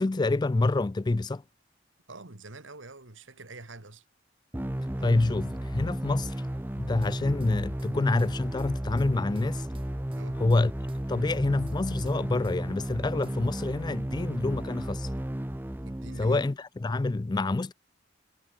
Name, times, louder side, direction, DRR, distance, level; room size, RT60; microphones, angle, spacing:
voice 1, 0.0-1.4 5.0-6.3 6.8-9.7 10.4-10.7 11.1-15.1 16.2-17.7, left 2 dB, 20° left, 0.4 m, -27 dB
voice 2, 2.1-4.0 10.1-10.4 15.8-16.4, right 2 dB, 85° right, 2.6 m, -46 dB
sound 1, 4.5-16.5, right 1 dB, 10° right, 0.7 m, -34 dB
sound 2, 7.0-7.9 8.2-9.1 9.4-10.6 10.9-11.8 12.1-13.0 13.2-13.4, right 2 dB, 30° right, 2.7 m, -56 dB
head